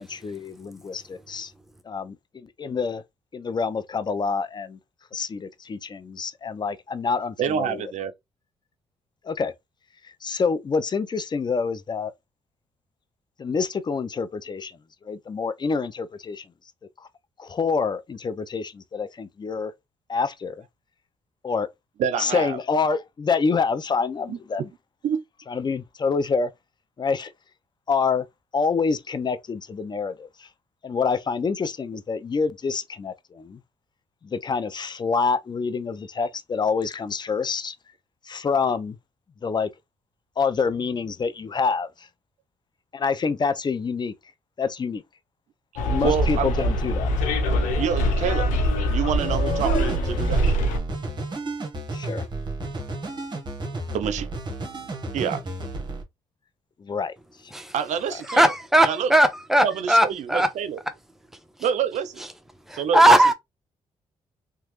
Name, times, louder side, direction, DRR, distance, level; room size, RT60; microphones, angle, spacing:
voice 1, 0.0-1.5 1.8-3.0 3.3-4.8 5.1-7.9 9.2-9.5 10.0-12.1 13.4-14.8 15.0-16.5 17.4-19.7 20.1-20.6 21.4-21.7 22.2-24.6 25.5-26.5 27.0-27.3 27.9-28.2 28.5-30.5 30.8-33.6 34.2-37.8 38.2-39.0 39.4-39.7 40.4-42.1 42.9-44.1 44.6-45.0 45.8-47.1 51.9-52.2 56.8-57.1 57.4-57.5, left 5 dB, 35° left, 0.6 m, -27 dB
voice 2, 7.4-8.1 22.0-22.6 24.3-24.4 25.0-25.2 46.0-46.7 47.8-48.5 48.9-50.4 53.9-54.3 55.1-55.4 57.7-58.4 58.8-59.1 59.6-60.8 61.6-62.2 62.8-63.3, right 8 dB, 70° right, 0.5 m, -27 dB
Bus, 45.8-50.8, equal, 85° left, 0.6 m, -23 dB
sound 1, 49.2-56.0, right 2 dB, 35° right, 1.1 m, -32 dB
voice 3, 58.3-60.5 62.7-63.3, right 1 dB, 5° right, 0.8 m, -18 dB
3.0 x 2.2 x 3.0 m
supercardioid pair, 55°, 13 cm